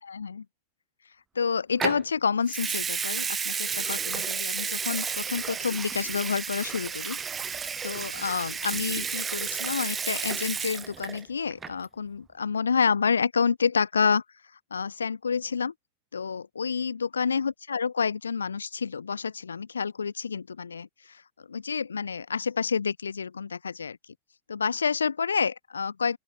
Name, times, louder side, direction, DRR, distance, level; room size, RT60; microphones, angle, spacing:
voice 1, 0.0-0.4 1.4-7.2 7.8-14.2 14.7-15.7 16.1-24.0 24.5-26.2, left 6 dB, 75° left, 3.9 m, -29 dB
Water tap faucet / Sink (filling or washing) / Liquid, 1.8-2.0 2.5-11.2 11.5-11.9, right 6 dB, 20° right, 1.1 m, -32 dB
open air
figure-of-eight pair, 90°, 0 cm